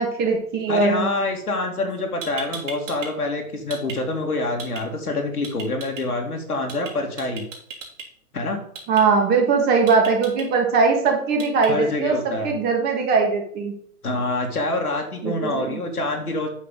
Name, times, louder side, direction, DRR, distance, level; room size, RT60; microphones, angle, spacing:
voice 1, 0.0-1.1 8.9-13.7 15.2-15.8, right 4 dB, 20° right, 2 dB, 1.8 m, -20 dB
voice 2, 0.7-7.5 8.3-8.6 11.7-12.6 14.0-16.5, left 2 dB, 90° left, 2 dB, 2.3 m, -26 dB
sound 1, 1.9-2.0 2.2-3.1 3.4-4.0 4.6-4.8 5.4-6.0 6.7-6.9 7.2-8.0 8.7-9.0 9.9-10.4 11.4-11.7, right 5 dB, 55° right, 3.0 m, -35 dB
8.4 x 6.7 x 3.8 m, 0.63 s
hypercardioid pair, 130°, 44 cm